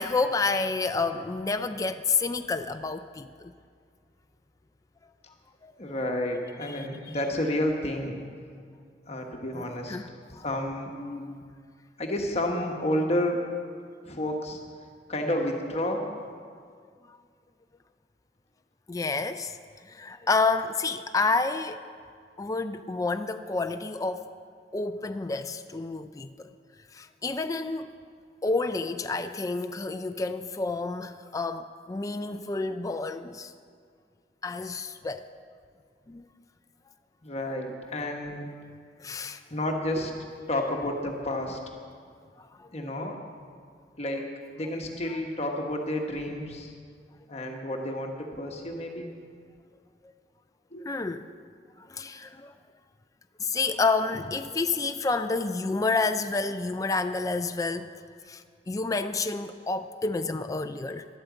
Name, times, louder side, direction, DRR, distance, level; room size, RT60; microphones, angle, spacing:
voice 1, 0.0-3.5 5.6-5.7 6.7-7.2 9.5-10.5 10.9-11.4 17.1-17.2 18.9-19.6 19.9-21.8 22.4-24.3 24.7-26.5 26.9-27.9 28.4-33.5 34.4-35.3 36.1-36.2 39.0-39.4 42.4-42.7 45.1-45.2 50.8-51.3 51.8-52.5 53.4-58.0 58.3-61.1, left 3 dB, 20° left, 0.4 m, -29 dB
voice 2, 5.8-8.2 9.1-10.0 10.4-10.9 12.0-13.4 14.1-14.6 15.1-16.1 37.2-38.5 39.5-40.1 40.5-41.6 42.7-43.2 44.0-44.3 44.5-46.7 47.3-49.1 50.7-50.8, left 1 dB, 40° left, 1.2 m, -30 dB
11.5 x 8.9 x 8.0 m
head